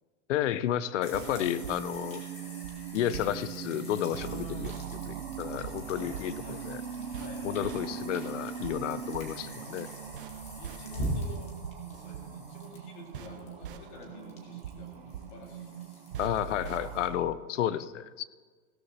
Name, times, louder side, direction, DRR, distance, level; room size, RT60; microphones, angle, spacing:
voice 1, 0.3-2.2 2.9-6.8 7.4-9.9 16.2-18.2, left 11 dB, 55° left, 17 dB, 0.5 m, -32 dB
sound 1, 1.0-17.1, equal, 15° left, 1.2 m, -43 dB
sound 2, 1.0-17.3, right 9 dB, 40° right, 0.6 m, -40 dB
voice 2, 4.1-4.8 5.9-6.1 6.4-6.6 7.1-7.9 9.4-11.6 11.8-16.3, left 3 dB, 35° left, 1 dB, 2.1 m, -49 dB
16.0 x 12.5 x 2.8 m, 1.5 s
supercardioid pair, 175°, 44 cm